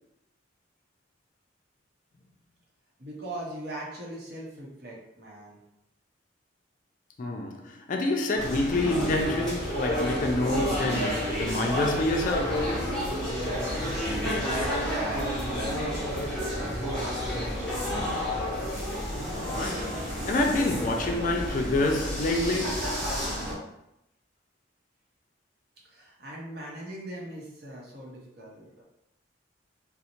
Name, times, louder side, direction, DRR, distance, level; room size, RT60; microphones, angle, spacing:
voice 1, 3.0-5.6 14.7-17.6 25.9-28.8, right 1 dB, 55° right, 0.7 m, -40 dB
voice 2, 7.2-12.8 19.3-23.1, left 2 dB, 45° left, 0.3 m, -28 dB
sound 1, 8.4-23.5, equal, ahead, 0.8 m, -30 dB
What bird, 10.8-18.2, equal, 30° right, 0.8 m, -44 dB
2.6 x 2.0 x 2.8 m
head